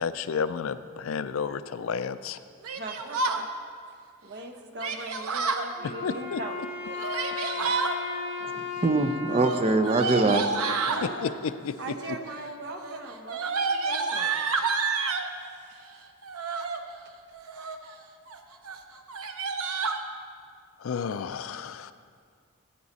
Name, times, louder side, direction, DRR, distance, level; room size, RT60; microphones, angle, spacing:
voice 1, 0.0-2.4 5.8-6.4 7.3-7.9 11.0-12.2 20.8-21.9, left 6 dB, 65° left, 13 dB, 0.4 m, -32 dB
voice 2, 2.6-3.5 4.2-6.6 10.9-11.3 11.8-14.4 15.4-15.9, right 2 dB, 50° right, 5 dB, 0.9 m, -40 dB
Yell, 2.6-3.4 4.8-5.7 6.8-8.0 9.3-11.1 11.9-12.3 12.6-15.3 16.2-16.8 17.3-17.9 18.3-18.4 18.6-18.8 19.1-20.0, right 4 dB, 80° right, 0.7 m, -29 dB
Wind instrument woodwind instrument, 5.8-10.9, left 4 dB, 30° left, 2.7 m, -36 dB
voice 3, 8.4-10.4, right 3 dB, 25° right, 8 dB, 0.5 m, -24 dB
15.0 x 8.6 x 4.1 m, 2.1 s
head